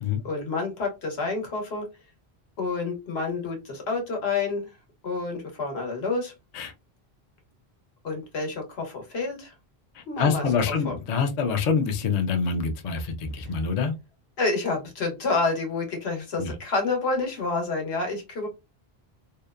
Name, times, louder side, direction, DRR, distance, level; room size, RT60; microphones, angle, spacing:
voice 1, 0.2-1.9 2.6-4.7 5.0-6.3 8.0-9.5 10.1-10.9 14.4-18.5, left 3 dB, 90° left, 1.2 m, -28 dB
voice 2, 10.0-13.9 16.4-16.5, left 5 dB, 55° left, 0.5 m, -26 dB
2.8 x 2.1 x 2.3 m
omnidirectional pair, 1.0 m